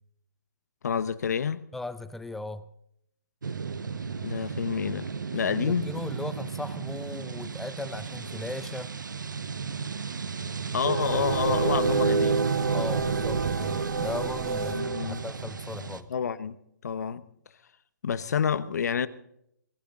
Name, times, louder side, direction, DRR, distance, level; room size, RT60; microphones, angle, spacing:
voice 1, 0.8-1.6 4.2-5.9 10.7-12.4 14.7-15.2 16.1-16.6 16.8-17.3 18.0-19.1, left 7 dB, 60° left, 1.1 m, -28 dB
voice 2, 1.7-2.7 5.6-8.9 12.6-16.1, left 2 dB, 5° left, 0.5 m, -37 dB
sound 1, 3.4-16.0, right 5 dB, 75° right, 1.3 m, -30 dB
sound 2, 11.0-15.2, right 7 dB, 45° right, 3.2 m, -38 dB
23.0 x 14.0 x 3.7 m
hypercardioid pair, 150°, 10 cm